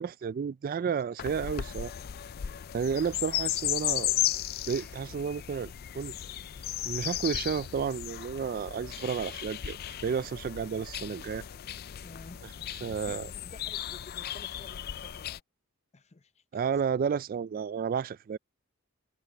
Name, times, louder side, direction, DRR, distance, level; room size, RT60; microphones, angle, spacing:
voice 1, 0.0-1.9 2.7-4.1 4.7-6.1 6.8-9.8 10.0-11.4 12.8-13.3 16.5-18.4, right 6 dB, 45° right, 0.3 m, -31 dB
sound 1, 0.7-6.2, left 1 dB, 10° left, 2.2 m, -66 dB
sound 2, 1.2-15.4, left 12 dB, 50° left, 0.4 m, -35 dB
sound 3, 5.8-11.1, left 5 dB, 85° left, 6.8 m, -67 dB
voice 2, 12.0-15.4 15.9-16.4, left 3 dB, 35° left, 0.8 m, -52 dB
head